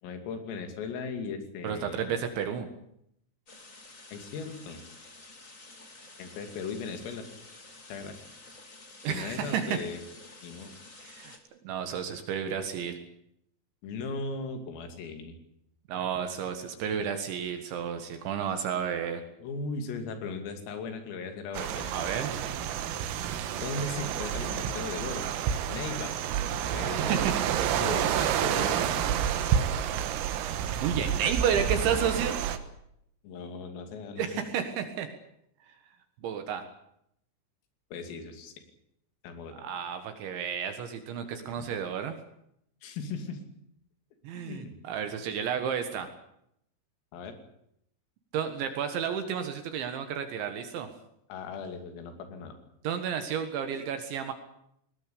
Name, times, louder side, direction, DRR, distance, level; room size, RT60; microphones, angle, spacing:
voice 1, 0.0-2.1 4.1-4.8 6.2-7.3 7.9-8.2 9.1-10.0 10.4-10.8 13.8-15.4 19.4-21.9 23.6-25.3 25.7-26.1 26.7-27.3 27.8-29.0 33.2-34.4 37.9-38.5 39.2-39.5 41.6-41.7 42.8-43.4 44.4-44.8 47.1-47.4 51.3-52.6, left 4 dB, 85° left, 7 dB, 5.4 m, -37 dB
voice 2, 1.6-2.7 9.0-9.8 11.0-11.4 11.6-13.0 15.9-19.2 21.9-22.4 26.9-27.3 30.3-30.4 30.8-32.4 34.2-35.1 36.2-36.6 39.5-42.2 44.2-46.1 48.3-50.9 52.8-54.3, right 8 dB, 70° right, 7 dB, 3.7 m, -31 dB
sound 1, 3.5-11.4, left 3 dB, 30° left, 1.5 m, -51 dB
sound 2, 21.5-32.6, right 9 dB, 90° right, 4.1 m, -29 dB
19.5 x 19.0 x 8.6 m, 0.74 s
omnidirectional pair, 5.9 m